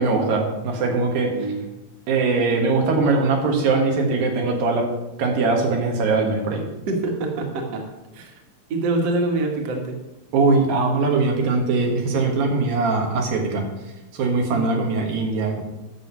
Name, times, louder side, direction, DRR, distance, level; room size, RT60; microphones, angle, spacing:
voice 1, 0.0-1.3 2.1-4.9 5.2-6.6 10.3-13.7 14.1-15.6, right 3 dB, 80° right, 1 dB, 3.5 m, -21 dB
voice 2, 6.9-7.8 8.1-8.3 8.7-10.0 14.5-14.8, right 2 dB, 50° right, 2 dB, 2.3 m, -25 dB
10.0 x 6.2 x 7.4 m, 0.98 s
omnidirectional pair, 4.1 m